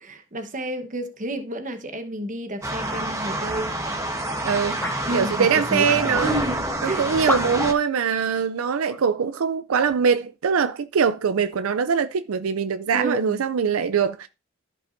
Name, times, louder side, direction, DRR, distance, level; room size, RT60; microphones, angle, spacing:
voice 1, 0.0-3.8 5.1-5.9 6.2-7.0 12.9-13.4, right 1 dB, 40° right, 1.1 m, -30 dB
sound 1, 2.6-7.7, right 1 dB, 15° right, 1.3 m, -28 dB
voice 2, 4.4-6.3 6.8-14.3, right 6 dB, 80° right, 0.4 m, -23 dB
sound 2, 4.8-5.0 5.8-6.3 7.3-7.7 8.9-9.0 9.7-9.9, left 2 dB, 10° left, 1.1 m, -29 dB
14.5 x 5.4 x 2.6 m
head